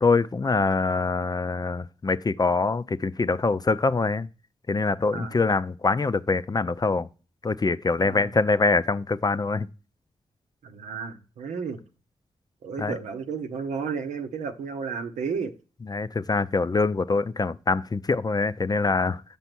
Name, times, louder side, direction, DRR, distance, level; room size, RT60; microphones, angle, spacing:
voice 1, 0.0-4.3 4.7-7.1 7.4-9.7 12.8-12.9 15.9-19.2, left 3 dB, 30° left, 0.5 m, -24 dB
voice 2, 8.0-8.3 10.6-11.8 12.6-15.5, right 5 dB, 90° right, 0.8 m, -32 dB
7.0 x 5.3 x 6.0 m
supercardioid pair, 45°, 12 cm